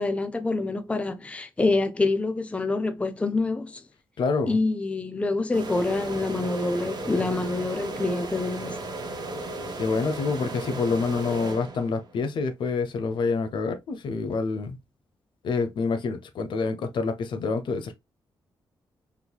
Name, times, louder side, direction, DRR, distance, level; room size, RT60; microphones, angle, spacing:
voice 1, 0.0-3.8 4.5-8.8, left 3 dB, 15° left, 0.5 m, -26 dB
voice 2, 4.2-4.6 9.8-14.8 15.4-18.0, left 4 dB, 70° left, 0.6 m, -27 dB
sound 1, 5.5-12.2, right 2 dB, 55° right, 1.1 m, -35 dB
3.6 x 3.0 x 2.2 m
cardioid pair, 105°, 8 cm